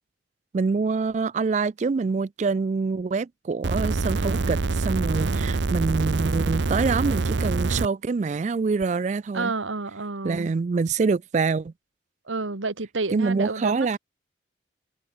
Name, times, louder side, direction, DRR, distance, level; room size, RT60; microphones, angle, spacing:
voice 1, 0.5-9.5 10.2-11.7 13.1-14.0, right 4 dB, 40° right, 0.3 m, -25 dB
sound 1, 3.6-7.9 8.8-8.9, right 3 dB, 70° right, 0.7 m, -25 dB
voice 2, 9.3-10.5 12.3-14.0, right 3 dB, 85° right, 1.6 m, -30 dB
head